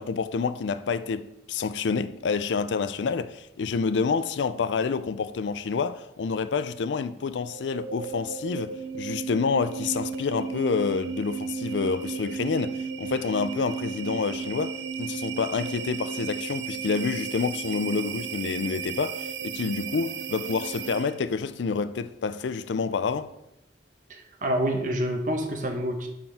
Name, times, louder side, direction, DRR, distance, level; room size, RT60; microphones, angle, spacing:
voice 1, 0.0-23.3, left 5 dB, 85° left, 0.4 m, -28 dB
sound 1, 7.4-21.3, right 5 dB, 90° right, 0.5 m, -34 dB
voice 2, 24.1-26.1, right 1 dB, 45° right, 1.1 m, -27 dB
11.5 x 4.4 x 3.5 m
head